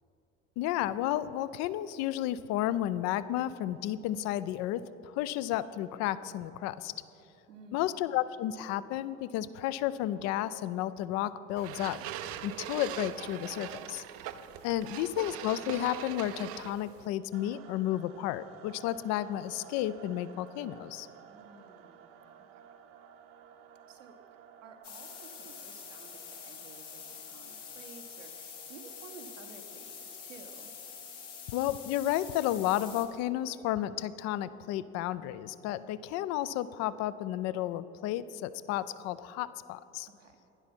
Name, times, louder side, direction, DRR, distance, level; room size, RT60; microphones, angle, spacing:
voice 1, 0.6-6.9 7.7-12.0 12.4-14.0 14.6-21.1 31.5-40.1, left 13 dB, 45° left, 16 dB, 0.5 m, -32 dB
voice 2, 7.5-8.1 14.9-15.4 21.3-22.1 22.5-22.6 23.8-30.7 40.0-40.4, right 4 dB, 80° right, 5 dB, 1.0 m, -54 dB
sound 1, 11.6-17.1, right 11 dB, 40° right, 0.5 m, -41 dB
sound 2, 17.3-32.1, right 8 dB, 55° right, 0.9 m, -55 dB
sound 3, 24.8-33.1, left 7 dB, 70° left, 1.4 m, -46 dB
12.0 x 10.5 x 4.3 m, 3.0 s
figure-of-eight pair, 65°, 38 cm